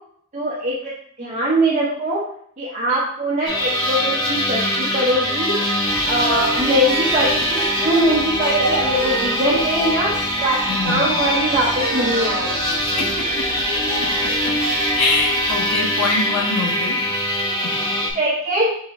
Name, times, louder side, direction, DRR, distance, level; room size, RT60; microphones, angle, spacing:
voice 1, 0.3-0.9 1.2-2.2 2.6-5.5 6.0-10.1 10.4-12.8 18.2-18.7, right 1 dB, 35° right, -6 dB, 0.9 m, -21 dB
sound 1, 3.5-18.1, equal, 20° left, 0.9 m, -22 dB
sound 2, 5.9-15.7, right 3 dB, 80° right, 0.7 m, -30 dB
voice 2, 10.7-11.1 12.8-13.5 15.0-17.0 17.3-17.5, left 3 dB, 70° left, -1 dB, 1.0 m, -24 dB
4.3 x 3.3 x 3.5 m, 0.63 s
head